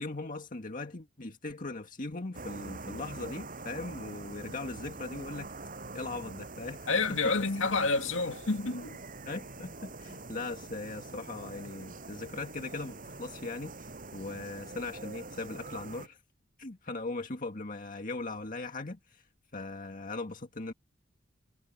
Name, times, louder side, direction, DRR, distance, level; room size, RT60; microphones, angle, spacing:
voice 1, 0.0-5.5 5.9-6.9 7.2-7.3 9.3-16.2 16.6-19.2 19.5-20.7, left 3 dB, 45° left, 1.8 m, -39 dB
sound 1, 2.3-16.1, right 3 dB, 45° right, 6.7 m, -45 dB
voice 2, 6.9-9.0, left 3 dB, 85° left, 2.1 m, -29 dB
head